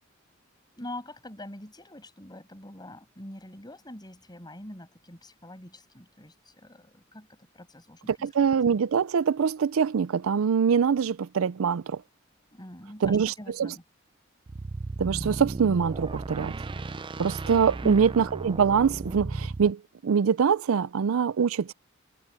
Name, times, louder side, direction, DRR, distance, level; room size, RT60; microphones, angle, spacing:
voice 1, 0.7-7.3 7.5-8.1 12.5-13.8 17.8-18.0, left 1 dB, 20° left, 6.6 m, -43 dB
voice 2, 8.1-12.0 13.0-13.7 15.0-16.5 17.2-21.7, right 6 dB, 80° right, 0.4 m, -24 dB
sound 1, 14.5-19.7, right 3 dB, 25° right, 0.4 m, -35 dB
head